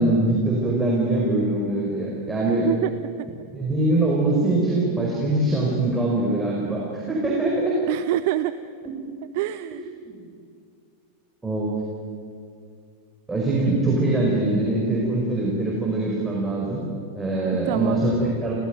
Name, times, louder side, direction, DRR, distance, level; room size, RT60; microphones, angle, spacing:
voice 1, 0.0-2.7 3.5-7.8 9.7-10.1 11.4-11.7 13.3-16.8 17.1-18.5, right 2 dB, 10° right, -3 dB, 5.0 m, -23 dB
voice 2, 7.9-8.5 9.3-9.9 17.4-18.0, right 17 dB, 50° right, 13 dB, 0.6 m, -25 dB
29.0 x 16.5 x 9.4 m, 2.4 s
figure-of-eight pair, 90°, 0 cm